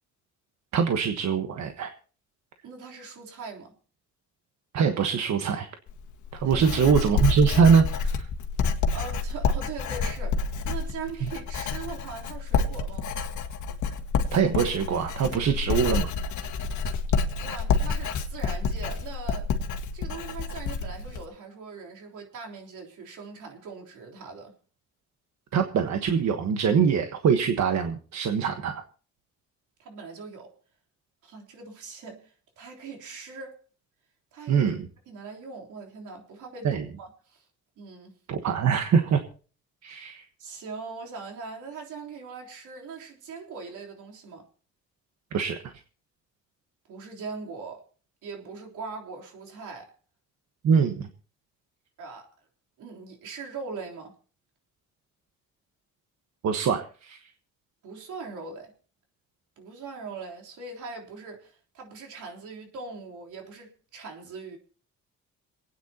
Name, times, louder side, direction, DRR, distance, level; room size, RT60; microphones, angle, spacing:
voice 1, 0.7-1.9 4.7-5.7 6.3-8.3 11.2-11.3 14.3-16.1 25.5-28.8 34.5-34.9 36.6-36.8 38.3-39.2 39.8-40.2 45.3-45.7 50.6-51.1 56.4-57.3, right 6 dB, 65° right, 1.3 m, -23 dB
voice 2, 2.6-3.7 6.4-6.9 8.9-13.1 17.4-19.5 19.9-24.5 29.8-30.5 31.2-33.6 34.3-34.7 35.1-37.5 37.8-38.1 40.4-44.4 46.9-47.8 48.2-49.9 52.0-52.3 52.8-54.1 57.8-58.7 59.6-64.6, right 4 dB, 80° right, 3.5 m, -41 dB
Writing, 5.9-21.2, left 4 dB, 70° left, 1.7 m, -28 dB
27.0 x 9.4 x 2.9 m
cardioid pair, 90°, 30 cm